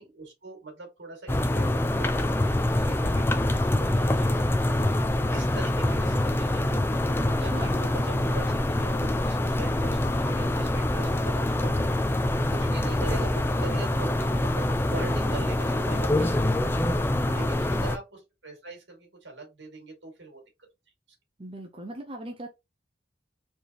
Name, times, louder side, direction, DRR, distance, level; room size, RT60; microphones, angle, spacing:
voice 1, 0.0-6.8 7.4-11.9 12.5-16.8 17.3-20.4, right 3 dB, 85° right, 2.4 m, -42 dB
sound 1, 1.3-18.0, left 1 dB, 10° left, 0.3 m, -25 dB
voice 2, 7.2-7.9 14.9-15.4 17.3-17.8 21.4-22.5, right 1 dB, 30° right, 0.7 m, -40 dB
4.3 x 3.3 x 3.0 m
head